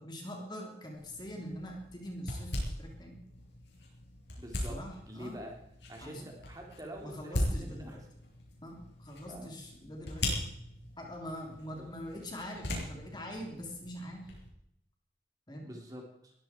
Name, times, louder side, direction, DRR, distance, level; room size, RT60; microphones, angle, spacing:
voice 1, 0.0-3.2 4.5-5.4 6.0-6.2 7.0-8.0 8.6-10.3 11.0-14.3 15.5-15.7, equal, 25° left, 1 dB, 3.3 m, -43 dB
sound 1, 0.9-14.5, left 1 dB, 80° left, 6.4 m, -40 dB
voice 2, 4.4-4.8 5.1-5.5 5.9-8.0 9.3-9.5 11.8-11.9 15.6-16.3, equal, 20° right, 1 dB, 3.2 m, -46 dB
21.0 x 15.0 x 4.5 m, 0.76 s
head